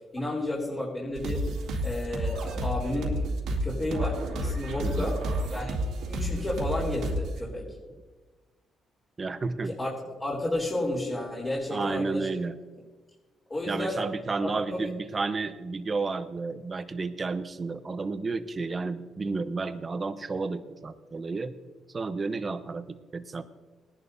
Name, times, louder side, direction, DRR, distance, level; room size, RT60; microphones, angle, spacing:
voice 1, 0.1-1.4 1.8-3.1 3.6-5.2 5.5-5.7 6.1-7.7 9.8-9.9 10.2-12.3 13.5-14.0 14.7-14.8, left 1 dB, 25° left, -5 dB, 3.4 m, -31 dB
sound 1, 1.2-7.4, right 1 dB, 85° right, 2.4 m, -30 dB
voice 2, 4.8-5.1 9.2-9.8 11.7-12.6 13.6-21.5 21.9-23.4, right 3 dB, 35° right, 10 dB, 0.8 m, -32 dB
20.0 x 11.0 x 2.7 m, 1.3 s
cardioid pair, 90°, 0 cm